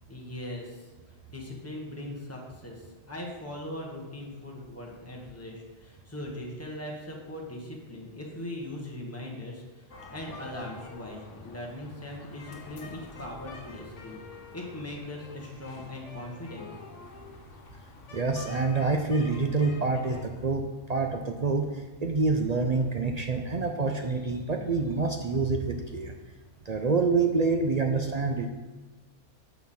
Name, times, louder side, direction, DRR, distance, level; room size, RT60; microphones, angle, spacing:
voice 1, 0.1-0.9 1.3-14.2 14.5-16.7, left 1 dB, 10° left, -1 dB, 1.4 m, -40 dB
sound 1, 9.9-20.3, left 3 dB, 75° left, 1.4 m, -47 dB
voice 2, 18.1-26.1 26.7-28.5, right 4 dB, 50° right, 4 dB, 0.5 m, -27 dB
6.9 x 5.8 x 5.8 m, 1.2 s
omnidirectional pair, 1.3 m